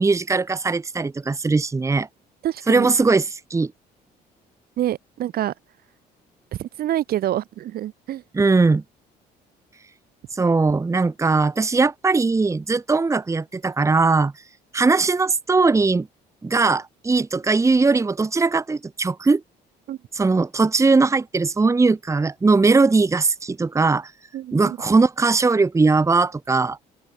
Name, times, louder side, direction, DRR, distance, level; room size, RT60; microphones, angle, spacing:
voice 1, 0.0-2.1 2.7-3.7 8.3-8.8 10.3-14.3 14.7-16.1 16.4-19.4 20.1-24.1 24.5-26.8, right 3 dB, 15° right, 1.4 m, -19 dB
voice 2, 2.4-2.9 4.8-5.5 6.6-8.2 19.9-20.0 24.3-24.8, right 12 dB, 65° right, 2.3 m, -26 dB
open air
cardioid pair, 110°, 17 cm